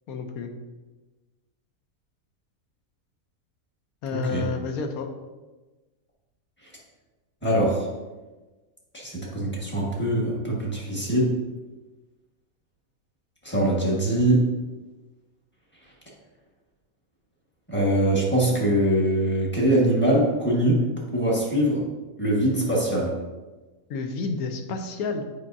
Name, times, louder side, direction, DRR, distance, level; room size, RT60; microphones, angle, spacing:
voice 1, 0.1-0.5 4.0-5.1 23.9-25.3, left 4 dB, 70° left, 5 dB, 1.2 m, -30 dB
voice 2, 4.1-4.4 7.4-7.9 8.9-11.3 13.4-14.5 17.7-20.8 21.1-21.8 22.2-23.1, right 1 dB, 5° left, -4 dB, 1.3 m, -22 dB
8.2 x 5.3 x 2.6 m, 1.2 s
omnidirectional pair, 1.7 m